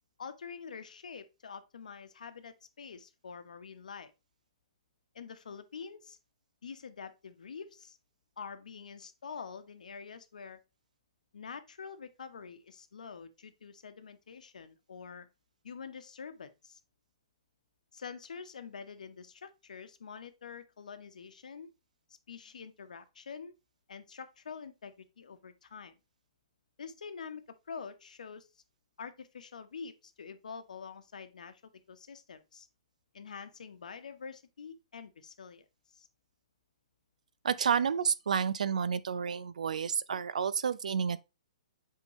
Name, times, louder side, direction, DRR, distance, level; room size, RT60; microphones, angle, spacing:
voice 1, 0.2-4.1 5.1-6.2 6.6-8.0 8.4-10.6 11.3-15.3 15.6-16.8 17.9-21.7 22.3-23.5 23.9-25.9 26.8-28.5 29.0-32.7 33.1-35.6 35.9-36.1, left 6 dB, 85° left, 1.1 m, -46 dB
voice 2, 37.4-41.2, right 7 dB, 75° right, 0.6 m, -30 dB
8.2 x 3.8 x 3.0 m
hypercardioid pair, 180°, 4 cm